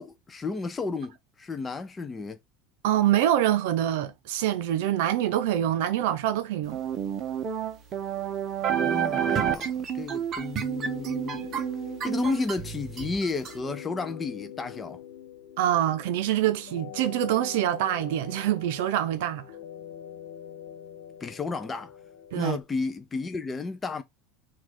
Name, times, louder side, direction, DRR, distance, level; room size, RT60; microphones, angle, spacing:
voice 1, 0.0-2.4 8.6-11.5 12.0-15.0 21.2-21.9 22.3-24.0, left 4 dB, 15° left, 0.3 m, -32 dB
voice 2, 2.8-6.8 15.6-19.4 22.3-22.6, right 12 dB, 65° right, 0.6 m, -25 dB
sound 1, 6.7-13.5, right 8 dB, 30° right, 0.6 m, -30 dB
sound 2, 10.6-22.6, left 10 dB, 75° left, 0.7 m, -44 dB
4.5 x 2.3 x 4.3 m
supercardioid pair, 165°, 0 cm